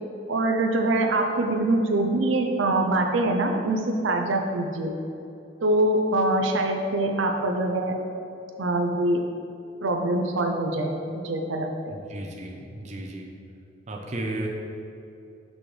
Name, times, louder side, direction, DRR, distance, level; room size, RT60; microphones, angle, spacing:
voice 1, 0.3-5.0 5.6-8.0 8.6-9.3 9.8-12.0, right 2 dB, 90° right, 3 dB, 0.6 m, -24 dB
voice 2, 11.9-13.3 13.9-14.5, right 1 dB, 35° right, 0 dB, 0.6 m, -34 dB
6.2 x 6.1 x 3.3 m, 2.7 s
head